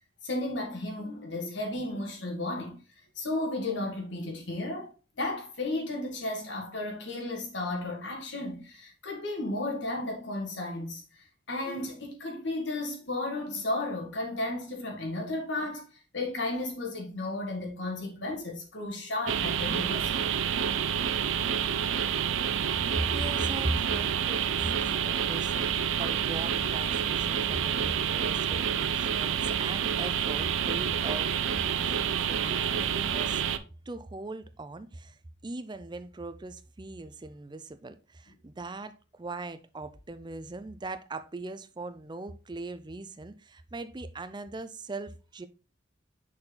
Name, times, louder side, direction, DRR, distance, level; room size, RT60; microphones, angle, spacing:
voice 1, 0.2-2.8 3.1-4.9 5.2-15.9 16.1-20.3, left 2 dB, 70° left, 1.8 m, -34 dB
sound 1, 19.3-33.6, right 8 dB, 85° right, 0.5 m, -28 dB
voice 2, 22.9-25.7 26.0-33.4 33.9-45.5, right 2 dB, 25° right, 0.5 m, -39 dB
6.4 x 4.4 x 3.8 m
head